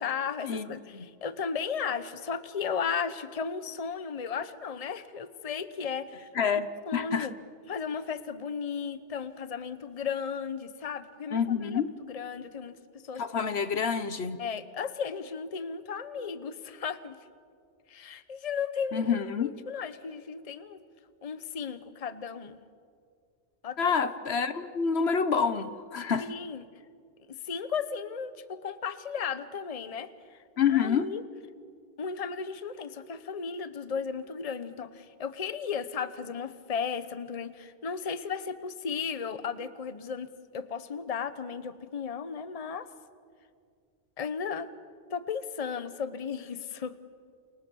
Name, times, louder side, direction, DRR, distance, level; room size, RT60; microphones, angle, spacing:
voice 1, 0.0-6.3 6.9-7.3 7.7-12.8 13.0-13.2 14.4-17.2 17.9-20.8 21.2-22.6 23.6-23.9 26.2-26.6 27.3-30.4 30.7-31.2 32.0-42.9 44.2-44.7 45.1-46.9, left 6 dB, 35° left, 12 dB, 1.0 m, -35 dB
voice 2, 6.3-6.7 6.9-7.3 11.3-11.9 13.2-14.4 18.9-19.5 23.8-26.3 30.6-31.1, left 6 dB, 65° left, 12 dB, 1.2 m, -27 dB
29.0 x 29.0 x 7.0 m, 2.2 s
omnidirectional pair, 1.2 m